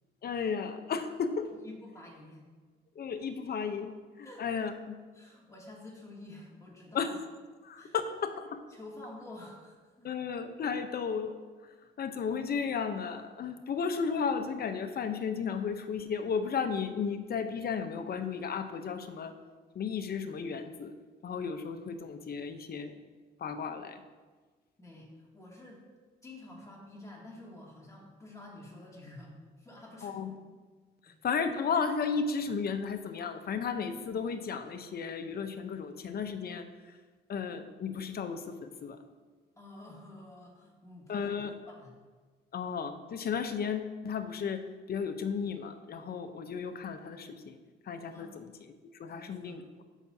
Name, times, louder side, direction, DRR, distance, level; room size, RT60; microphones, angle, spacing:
voice 1, 0.2-1.5 3.0-4.9 6.9-7.2 7.6-8.6 10.0-11.4 12.0-19.3 19.7-20.9 21.2-23.0 23.4-24.0 30.0-30.3 31.2-36.7 37.3-39.0 41.1-41.5 42.5-47.6 47.9-48.4 49.0-49.8, left 6 dB, 50° left, 8 dB, 0.8 m, -34 dB
voice 2, 1.6-2.4 4.2-4.5 5.1-7.2 7.8-8.0 8.7-10.1 24.8-25.8 26.2-29.3 29.6-30.2 31.1-31.2 39.6-41.3 41.7-41.9 48.1-48.4 49.1-49.6, left 2 dB, 15° left, -4 dB, 2.5 m, -49 dB
14.5 x 5.8 x 2.8 m, 1.4 s
cardioid pair, 90°, 20 cm